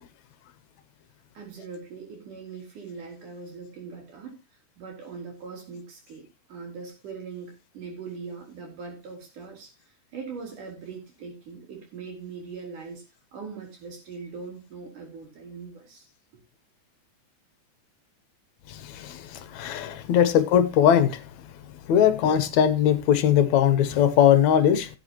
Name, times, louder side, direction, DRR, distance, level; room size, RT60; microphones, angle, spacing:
voice 1, 1.4-4.4 4.8-13.0 13.3-16.1, right 5 dB, 85° right, 5.4 m, -41 dB
voice 2, 18.9-21.2 21.9-24.9, left 9 dB, 70° left, 2.1 m, -20 dB
17.5 x 8.4 x 2.9 m
omnidirectional pair, 3.5 m